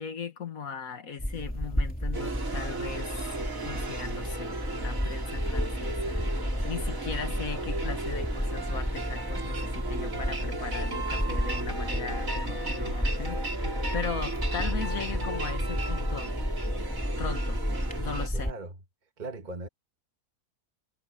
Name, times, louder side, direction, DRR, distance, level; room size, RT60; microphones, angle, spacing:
voice 1, 0.0-3.3 3.6-6.3 6.6-16.3 17.2-17.6 18.0-18.5, left 6 dB, 65° left, 2.0 m, -38 dB
sound 1, 1.2-18.5, equal, 5° left, 3.5 m, -32 dB
sound 2, 2.1-18.3, right 2 dB, 60° right, 3.9 m, -36 dB
voice 2, 18.3-18.7 19.2-19.7, right 2 dB, 30° right, 1.7 m, -38 dB
omnidirectional pair, 1.6 m